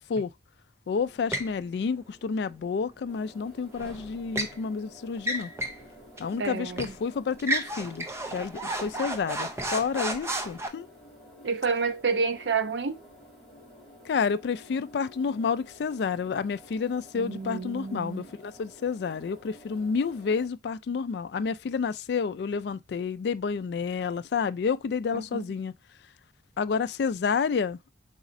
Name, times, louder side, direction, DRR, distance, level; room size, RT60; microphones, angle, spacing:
voice 1, 0.9-5.5 6.2-8.1 8.3-10.9 14.1-25.7 26.6-27.9, left 5 dB, 65° left, 0.3 m, -29 dB
sound 1, 1.3-1.6 3.8-4.6 5.2-5.8 6.2-6.3 6.8-7.0 7.4-10.7, right 1 dB, 15° right, 0.6 m, -32 dB
sound 2, 3.1-20.5, equal, ahead, 3.0 m, -52 dB
voice 2, 6.4-6.9 11.4-13.0 17.2-18.3 25.1-25.5, right 4 dB, 75° right, 0.6 m, -29 dB
5.0 x 4.1 x 2.6 m
head